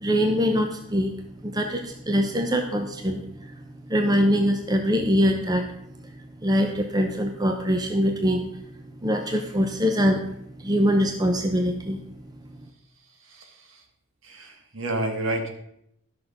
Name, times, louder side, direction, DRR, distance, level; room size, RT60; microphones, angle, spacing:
voice 1, 0.0-1.1 1.4-3.6 3.9-5.6 6.4-8.4 9.0-10.2 10.6-12.0, equal, 20° right, 4 dB, 0.7 m, -23 dB
voice 2, 13.2-13.8 14.2-15.5, right 1 dB, 65° right, 5 dB, 1.6 m, -30 dB
12.0 x 6.1 x 5.2 m, 0.77 s
head